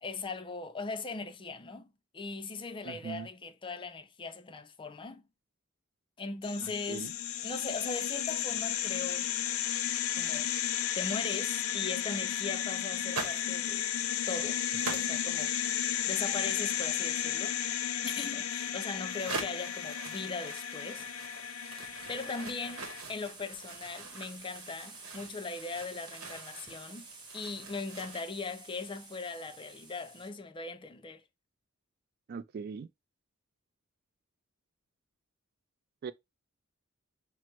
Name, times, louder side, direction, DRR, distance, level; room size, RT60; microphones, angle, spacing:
voice 1, 0.0-5.2 6.2-7.2 7.4-9.3 10.1-10.5 10.9-13.9 14.3-14.6 14.9-15.6 16.1-17.6 18.0-21.0 22.1-31.2, left 4 dB, 25° left, 0.4 m, -39 dB
voice 2, 2.8-3.3 6.6-7.1 32.3-32.9 36.0-36.1, right 5 dB, 50° right, 0.3 m, -40 dB
sound 1, 6.4-23.0, left 10 dB, 85° left, 0.5 m, -34 dB
sound 2, 11.9-12.1 12.6-13.6 14.0-14.3 14.7-15.4 18.7-18.8 19.1-28.2, right 4 dB, 80° right, 0.9 m, -44 dB
sound 3, 17.9-30.3, right 3 dB, 20° right, 0.8 m, -52 dB
5.8 x 2.1 x 3.0 m
head